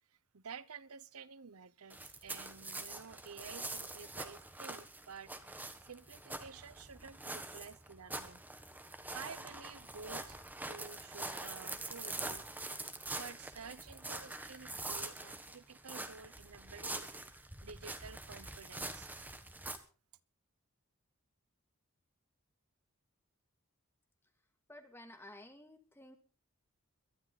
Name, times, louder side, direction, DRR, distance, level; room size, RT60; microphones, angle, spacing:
voice 1, 0.3-5.3 5.8-8.4 9.1-10.4 10.7-12.4 13.1-19.1, right 5 dB, 90° right, 0.9 m, -51 dB
sound 1, 1.9-19.8, right 2 dB, 10° right, 1.3 m, -44 dB
voice 2, 24.7-26.2, left 1 dB, 10° left, 2.3 m, -53 dB
22.5 x 12.0 x 4.1 m
head